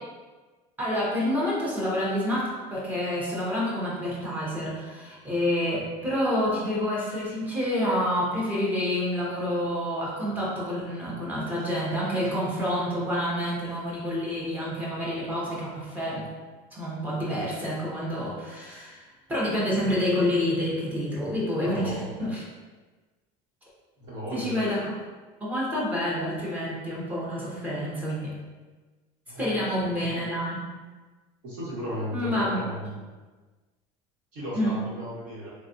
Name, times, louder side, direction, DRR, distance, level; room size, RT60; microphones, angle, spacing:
voice 1, 0.8-16.3 16.7-22.4 24.3-24.9 25.4-28.3 29.4-30.7 32.1-32.6 34.5-34.9, left 1 dB, 10° right, -6 dB, 0.7 m, -28 dB
voice 2, 21.6-22.1 24.0-24.6 29.3-29.7 31.4-32.9 34.3-35.5, equal, 60° right, -7 dB, 1.3 m, -35 dB
3.4 x 2.3 x 2.6 m, 1.3 s
cardioid pair, 165°, 15 cm